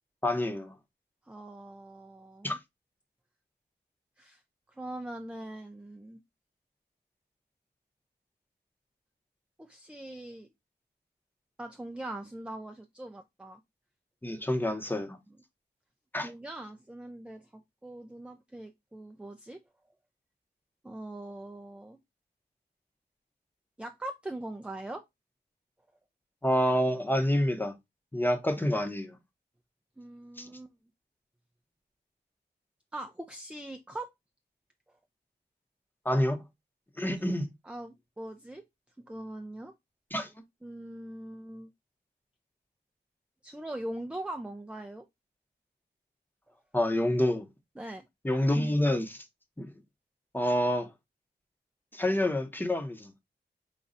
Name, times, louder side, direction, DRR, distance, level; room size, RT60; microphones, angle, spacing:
voice 1, 0.2-0.7 2.4-2.6 14.2-15.2 16.1-16.3 26.4-27.7 28.1-29.2 30.4-30.5 36.0-36.4 37.0-37.5 40.1-40.3 46.7-47.5 48.2-49.2 49.6-49.7 50.3-50.9 51.9-53.1, left 1 dB, 10° left, 0.8 m, -27 dB
voice 2, 1.3-2.6 4.2-4.4 4.7-6.2 9.6-10.5 11.6-13.6 15.3-15.4 16.2-19.6 20.8-22.0 23.8-25.0 30.0-30.7 32.9-34.1 37.6-38.6 39.1-39.7 40.6-41.7 43.4-45.1 47.8-48.1, right 1 dB, 5° right, 0.4 m, -41 dB
4.9 x 2.3 x 3.9 m
wide cardioid pair, 105°, 18 cm